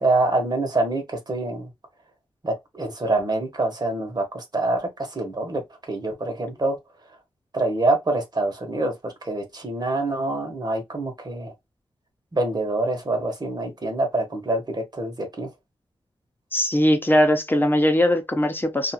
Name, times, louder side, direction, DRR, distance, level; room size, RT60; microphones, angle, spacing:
voice 1, 0.0-1.7 2.4-5.6 5.9-6.8 7.5-11.5 12.3-15.5, right 2 dB, 40° right, 1.1 m, -25 dB
voice 2, 16.5-18.9, left 1 dB, 20° left, 0.8 m, -20 dB
2.6 x 2.5 x 2.8 m
wide cardioid pair, 65°, 10 cm